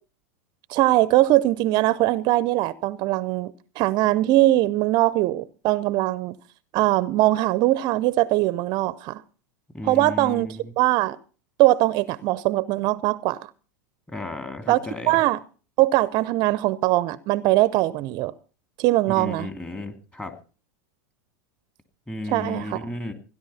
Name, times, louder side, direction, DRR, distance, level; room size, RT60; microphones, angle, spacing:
voice 1, 0.7-6.4 6.7-9.2 9.8-10.5 10.8-11.2 11.6-13.4 14.7-14.8 15.1-15.4 15.8-18.3 18.8-19.5 22.3-22.8, right 17 dB, 45° right, 0.6 m, -21 dB
voice 2, 9.7-10.7 14.1-15.2 19.1-20.3 22.1-23.1, left 2 dB, 10° left, 2.7 m, -34 dB
16.0 x 11.0 x 5.6 m
hypercardioid pair, 105°, 10 cm